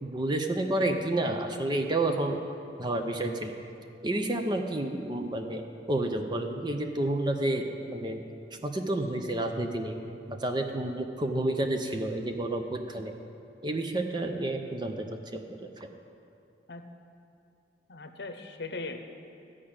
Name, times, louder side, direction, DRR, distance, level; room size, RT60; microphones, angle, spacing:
voice 1, 0.0-2.4 2.8-3.5 4.0-5.6 5.9-8.2 8.6-10.0 10.3-13.1 13.6-15.1 15.5-15.9, right 1 dB, 25° right, 5 dB, 0.6 m, -30 dB
voice 2, 17.9-19.0, left 3 dB, 70° left, 6 dB, 0.8 m, -39 dB
13.5 x 5.0 x 8.7 m, 2.6 s
head